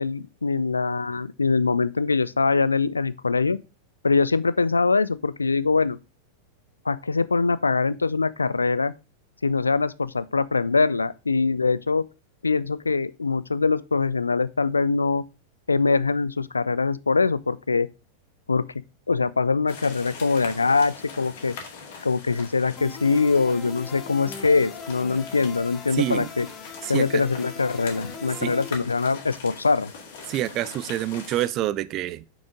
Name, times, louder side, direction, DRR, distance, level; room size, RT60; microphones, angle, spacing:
voice 1, 0.0-3.6 4.0-6.0 6.9-8.9 9.4-12.1 12.4-15.2 15.7-17.9 18.5-18.6 19.1-21.6 22.0-26.5 26.9-29.9, left 4 dB, 80° left, 0.3 m, -23 dB
sound 1, 19.7-31.5, left 5 dB, 55° left, 2.1 m, -42 dB
sound 2, 22.8-28.7, left 5 dB, 25° left, 1.3 m, -40 dB
voice 2, 25.9-26.3 26.8-27.2 28.4-28.5 30.3-32.2, right 14 dB, 35° right, 0.4 m, -27 dB
6.2 x 6.0 x 3.6 m
figure-of-eight pair, 90°, 0 cm